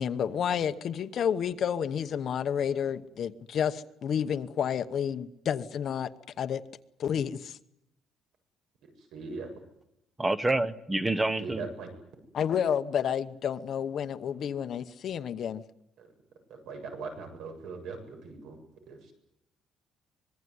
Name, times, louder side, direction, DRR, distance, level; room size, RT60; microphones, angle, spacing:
voice 1, 0.0-6.1 6.4-6.6 7.0-7.6 12.3-15.6, left 8 dB, 45° left, 10 dB, 1.0 m, -30 dB
voice 2, 8.8-9.5 11.4-11.9 16.0-16.1 16.5-18.6 18.9-19.1, right 4 dB, 70° right, 5 dB, 7.6 m, -40 dB
voice 3, 10.2-11.6, right 2 dB, 10° right, 14 dB, 1.0 m, -27 dB
25.0 x 21.5 x 9.6 m, 0.82 s
cardioid pair, 175°, 0 cm